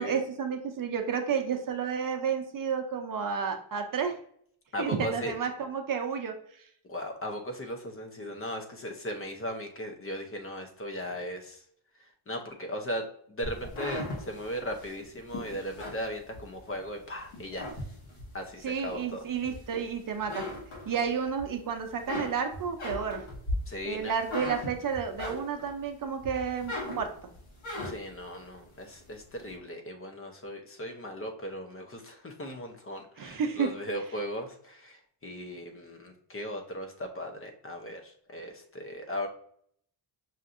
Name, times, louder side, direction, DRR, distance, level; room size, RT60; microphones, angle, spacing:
voice 1, 0.0-4.1 4.8-6.3 18.6-20.5 20.9-23.2 23.8-27.1 33.2-33.7, right 6 dB, 45° right, 4 dB, 0.6 m, -31 dB
voice 2, 4.7-5.3 6.9-11.6 12.3-13.0 13.3-17.7 18.3-19.2 23.7-24.1 27.8-39.3, equal, 25° left, 4 dB, 0.6 m, -37 dB
sound 1, 13.4-16.8 17.3-18.4 18.9-19.9 20.2-21.4 21.8-25.8 26.2-28.2, left 1 dB, 80° left, 1.6 m, -37 dB
5.7 x 2.6 x 2.5 m, 0.64 s
cardioid pair, 120°, 49 cm